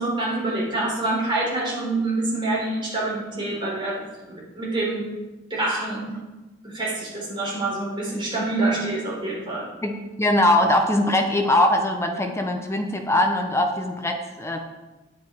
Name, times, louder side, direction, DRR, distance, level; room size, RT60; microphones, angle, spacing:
voice 1, 0.0-5.0 5.5-6.1 6.6-9.7, right 2 dB, 25° right, -5 dB, 3.9 m, -26 dB
voice 2, 9.8-14.6, left 1 dB, 15° left, 4 dB, 0.8 m, -21 dB
9.7 x 8.7 x 4.5 m, 1.1 s
head